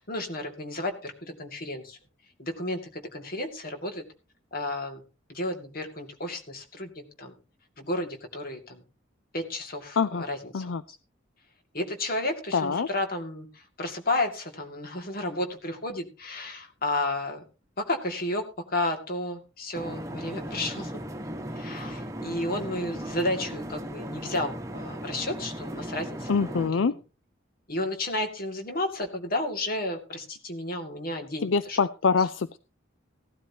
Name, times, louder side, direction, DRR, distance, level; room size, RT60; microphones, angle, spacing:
voice 1, 0.0-2.0 2.4-4.0 4.5-5.0 5.3-7.3 7.8-8.8 9.3-10.8 11.7-17.4 17.9-18.4 18.7-21.0 21.5-27.0 27.7-31.8 32.2-32.3, left 1 dB, 50° left, 5 dB, 2.3 m, -32 dB
voice 2, 12.5-12.9 26.3-26.9 31.4-32.6, left 5 dB, 80° left, 14 dB, 0.5 m, -25 dB
sound 1, 19.7-26.7, equal, 15° right, 1.2 m, -37 dB
16.5 x 12.5 x 2.9 m, 0.31 s
head